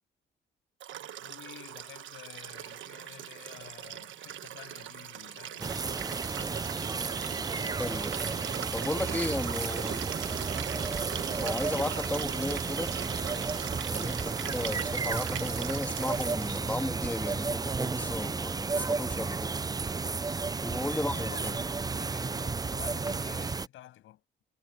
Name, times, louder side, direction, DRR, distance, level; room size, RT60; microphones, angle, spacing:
Liquid, 0.8-16.8 18.1-18.2, right 12 dB, 75° right, 1.3 m, -40 dB
voice 1, 1.2-6.0 9.9-10.0 20.9-21.7 22.0-24.2, left 13 dB, 85° left, 7.9 m, -50 dB
sound 1, 5.6-23.7, right 4 dB, 20° right, 0.5 m, -33 dB
voice 2, 7.8-8.2 8.7-10.5 11.4-12.9 13.9-19.5 20.6-21.5, left 1 dB, 10° left, 1.9 m, -35 dB
cardioid pair, 90°, 20 cm